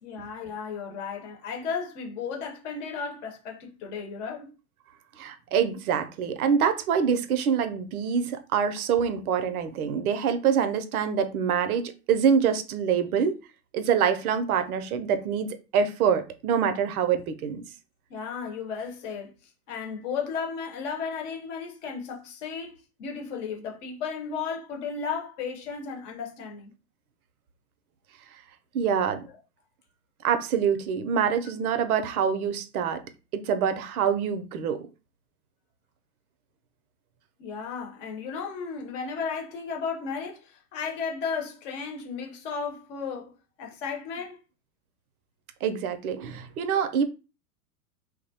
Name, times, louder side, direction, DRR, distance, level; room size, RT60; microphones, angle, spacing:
voice 1, 0.0-4.5 18.1-19.3 19.7-26.7 37.4-43.3 43.6-44.4, left 5 dB, 50° left, 0.9 m, -34 dB
voice 2, 5.2-13.4 13.7-17.6 28.7-29.2 30.2-33.0 33.3-34.9 45.6-47.0, right 7 dB, 75° right, 0.5 m, -25 dB
2.3 x 2.0 x 2.7 m
hypercardioid pair, 110°, 45 cm